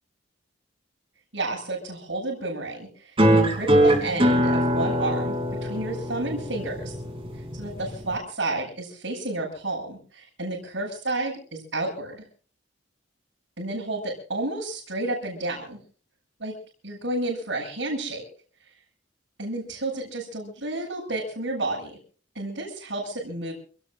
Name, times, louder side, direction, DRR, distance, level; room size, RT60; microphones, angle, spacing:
voice 1, 1.3-7.0 7.3-12.2 13.6-15.8 16.4-16.5 16.8-18.2 18.6-18.7 19.4-22.0 22.3-23.5, right 2 dB, 70° right, -5 dB, 7.5 m, -31 dB
sound 1, 3.2-8.2, equal, 30° right, 3.2 m, -23 dB
29.0 x 18.0 x 2.6 m, 0.42 s
head